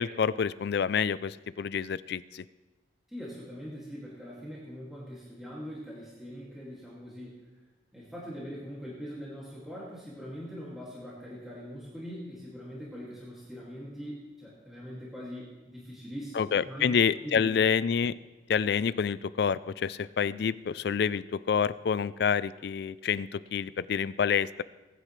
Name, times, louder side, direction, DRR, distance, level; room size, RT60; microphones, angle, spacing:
voice 1, 0.0-2.4 16.4-18.1 18.5-24.6, left 7 dB, 60° left, 17 dB, 0.3 m, -28 dB
voice 2, 3.1-7.4 7.9-16.9 17.2-17.5, equal, ahead, -7 dB, 2.2 m, -42 dB
18.5 x 9.9 x 3.2 m, 1.2 s
head